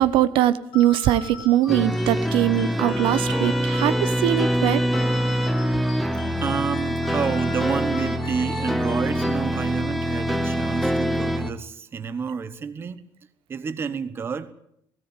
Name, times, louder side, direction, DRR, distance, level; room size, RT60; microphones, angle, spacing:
voice 1, 0.0-4.8, right 13 dB, 85° right, 1.1 m, -21 dB
sound 1, 0.7-9.8, left 8 dB, 85° left, 4.4 m, -42 dB
sound 2, 1.7-11.5, equal, ahead, 0.9 m, -24 dB
voice 2, 6.4-13.0 13.5-14.5, right 6 dB, 25° right, 1.1 m, -29 dB
17.5 x 17.0 x 9.1 m
cardioid pair, 175°, 9 cm